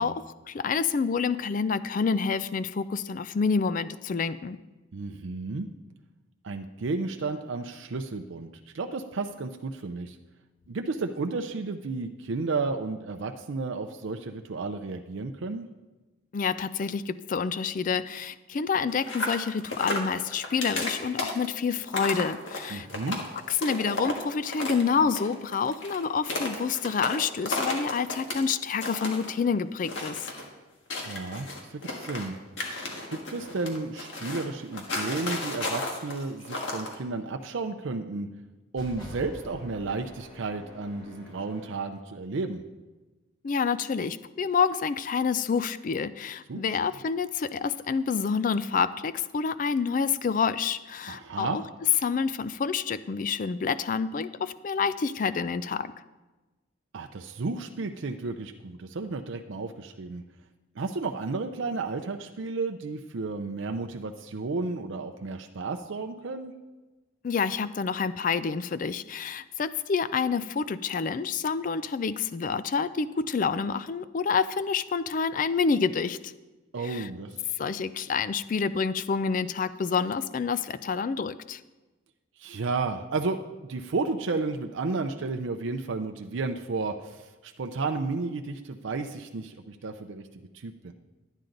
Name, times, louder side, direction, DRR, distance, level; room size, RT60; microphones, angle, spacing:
voice 1, 0.0-4.6 16.3-22.9 23.5-30.3 43.4-51.6 52.0-55.9 67.2-76.3 76.8-77.1 77.6-81.6, left 5 dB, 40° left, 15 dB, 0.3 m, -28 dB
voice 2, 4.9-5.7 6.4-8.5 8.7-10.2 10.7-15.7 22.7-23.2 31.1-32.4 33.1-38.3 38.7-42.6 46.5-46.8 51.1-51.6 56.9-60.2 60.8-66.5 76.7-77.4 82.4-83.4 83.7-90.9, right 3 dB, 70° right, 5 dB, 0.5 m, -32 dB
sound 1, 18.9-24.8 25.1-28.4 28.7-29.3 29.8-30.4 30.9-32.3 32.6-36.9, left 2 dB, 70° left, 1.7 m, -33 dB
sound 2, 38.7-41.9, left 1 dB, 20° left, 2.0 m, -46 dB
11.5 x 9.0 x 3.9 m, 1.2 s
head